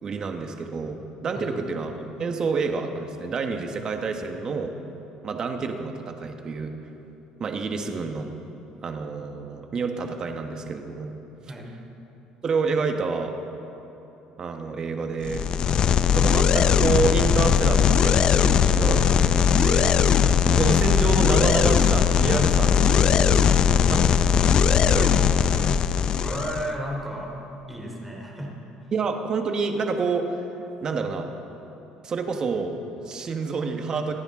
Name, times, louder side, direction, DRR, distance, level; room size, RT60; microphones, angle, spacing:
voice 1, 0.0-4.7 5.2-6.7 7.4-8.3 8.8-11.2 11.4-11.5 12.4-13.3 14.4-15.4 16.1-20.0 20.4-24.4 24.9-25.8 28.9-30.4 30.8-31.3 32.0-34.1, right 4 dB, 35° right, 5 dB, 1.3 m, -28 dB
sound 1, 15.2-26.7, left 7 dB, 45° left, 0.5 m, -19 dB
voice 2, 26.2-27.3 27.7-28.5 28.8-28.9, right 1 dB, 5° right, -2 dB, 2.9 m, -33 dB
24.5 x 10.0 x 3.8 m, 3.0 s
cardioid pair, 120°, 2 cm